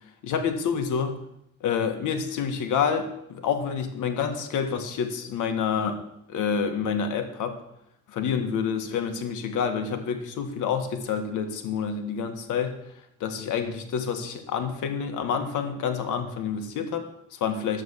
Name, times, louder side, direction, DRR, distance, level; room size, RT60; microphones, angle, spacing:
voice 1, 0.2-1.2 1.6-6.0 6.3-7.6 8.1-12.8 13.2-17.8, left 6 dB, 85° left, 6 dB, 1.8 m, -28 dB
11.0 x 8.1 x 7.4 m, 0.77 s
cardioid pair, 90°, 30 cm